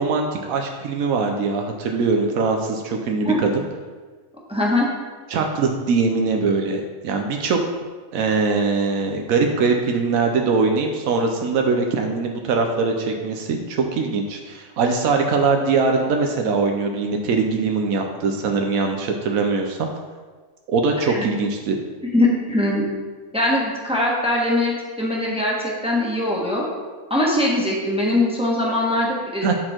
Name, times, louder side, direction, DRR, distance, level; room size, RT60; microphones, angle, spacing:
voice 1, 0.0-3.6 5.3-7.6 8.1-19.9 20.7-21.8 29.4-29.5, right 4 dB, 85° right, 3 dB, 1.1 m, -22 dB
voice 2, 4.5-4.9 21.0-21.3 22.1-22.8 23.3-25.5 25.8-26.6 27.1-29.5, left 1 dB, 5° right, -3 dB, 1.3 m, -21 dB
10.5 x 4.3 x 4.4 m, 1.4 s
omnidirectional pair, 1.4 m